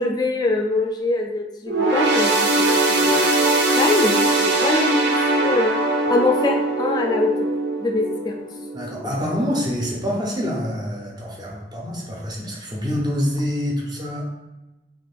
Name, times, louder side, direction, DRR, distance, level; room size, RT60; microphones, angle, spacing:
voice 1, 0.0-3.4 3.8-5.1 5.4-5.7 6.1-7.5 7.8-8.3, left 2 dB, 25° left, 1 dB, 0.4 m, -23 dB
sound 1, 1.7-9.3 9.8-9.9 10.8-10.9, right 2 dB, 75° right, 0.5 m, -21 dB
voice 2, 8.7-14.2, equal, 25° right, -2 dB, 0.6 m, -26 dB
2.5 x 2.4 x 3.4 m, 1.0 s
head